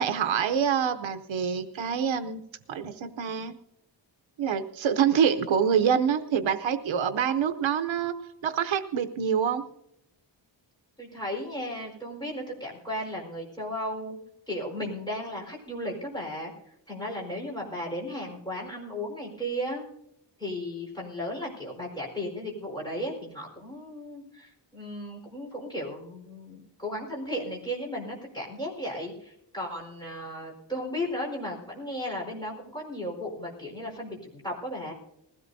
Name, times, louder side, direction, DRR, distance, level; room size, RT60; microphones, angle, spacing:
voice 1, 0.0-2.4 2.7-3.5 4.4-8.1 8.4-9.6, right 7 dB, 80° right, 9 dB, 0.8 m, -26 dB
voice 2, 11.0-14.2 14.5-16.5 16.9-19.9 20.4-34.9, equal, 10° left, -2 dB, 4.4 m, -35 dB
20.5 x 16.5 x 2.7 m, 0.81 s
wide cardioid pair, 180°, 46 cm